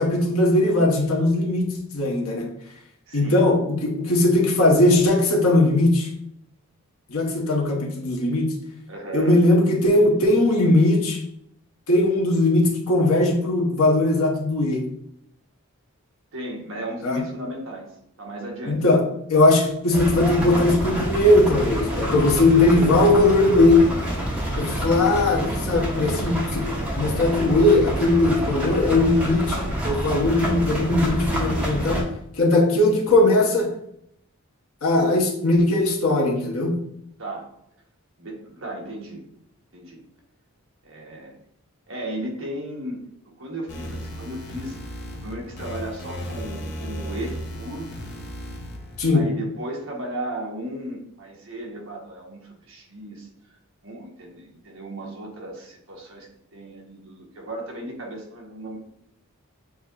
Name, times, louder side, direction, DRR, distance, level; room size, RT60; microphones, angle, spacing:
voice 1, 0.0-2.5 3.1-6.1 7.1-8.5 9.1-11.2 11.9-14.8 17.0-17.2 18.7-19.0 19.3-23.8 24.6-26.6 26.9-32.0 32.4-33.7 34.8-36.7 49.0-49.3, left 2 dB, 75° left, 0 dB, 1.0 m, -19 dB
voice 2, 3.1-3.4 8.9-9.4 16.3-17.8 18.2-19.0 37.2-37.5 38.2-39.3 39.7-40.0 40.8-41.3 41.9-43.0 43.4-44.8 45.1-47.9 49.1-53.3 53.8-56.3 56.5-58.8, right 1 dB, 60° right, -1 dB, 1.2 m, -35 dB
sound 1, 19.9-32.0, equal, 5° right, 1.1 m, -27 dB
sound 2, 43.7-49.1, equal, 50° left, 0.7 m, -35 dB
7.1 x 2.9 x 2.4 m, 0.74 s
head